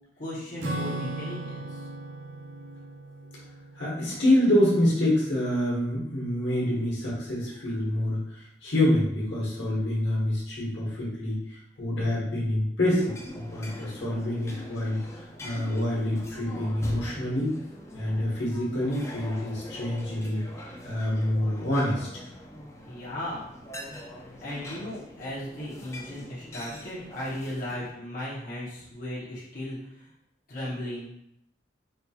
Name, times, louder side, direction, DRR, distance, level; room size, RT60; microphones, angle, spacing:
voice 1, 0.2-1.9 22.9-23.5 24.4-30.1 30.5-31.2, left 1 dB, 50° left, -8 dB, 0.9 m, -36 dB
Acoustic guitar / Strum, 0.6-5.4, right 2 dB, 90° right, 0.6 m, -38 dB
voice 2, 3.7-17.5 17.9-20.4 20.8-22.1, left 1 dB, 85° left, -5 dB, 1.2 m, -27 dB
sound 1, 12.8-27.9, left 1 dB, 15° left, 0.4 m, -44 dB
4.3 x 2.8 x 2.3 m, 0.81 s
head